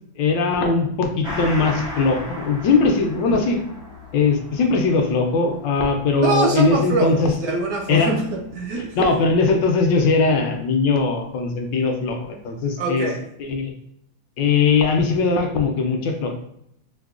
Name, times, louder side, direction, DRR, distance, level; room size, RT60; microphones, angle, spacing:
voice 1, 0.2-3.6 4.1-7.3 7.9-8.1 9.0-13.1 13.4-13.7 14.4-16.4, left 4 dB, 75° left, 4 dB, 1.2 m, -20 dB
Gong, 1.2-10.2 10.5-10.6, left 1 dB, 5° right, 0.4 m, -37 dB
voice 2, 6.2-9.1 12.8-13.2, right 3 dB, 75° right, 1 dB, 1.1 m, -24 dB
4.7 x 2.1 x 2.4 m, 0.73 s
omnidirectional pair, 2.1 m